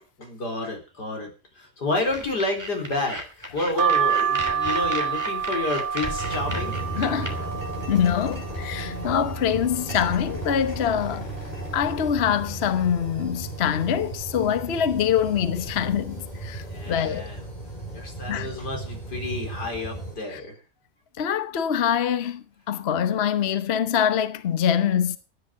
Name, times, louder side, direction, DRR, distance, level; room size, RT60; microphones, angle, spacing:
voice 1, 0.2-1.3 1.6-6.8 16.7-17.5 17.9-20.5, left 2 dB, 85° left, 4.8 m, -30 dB
sound 1, 2.1-7.3, right 1 dB, 10° right, 3.0 m, -35 dB
sound 2, 3.8-9.5 9.9-10.7 11.1-11.2 11.3-12.5 13.0-13.3 14.1-14.4 15.2-15.4 15.7-15.9, right 8 dB, 90° right, 1.9 m, -28 dB
sound 3, 6.2-20.1, right 2 dB, 25° left, 6.0 m, -35 dB
voice 2, 7.0-7.5 7.9-11.3 11.7-17.3 18.3-18.5 20.3-20.4 21.2-25.2, left 8 dB, 45° left, 1.1 m, -24 dB
14.5 x 10.0 x 6.4 m
omnidirectional pair, 1.7 m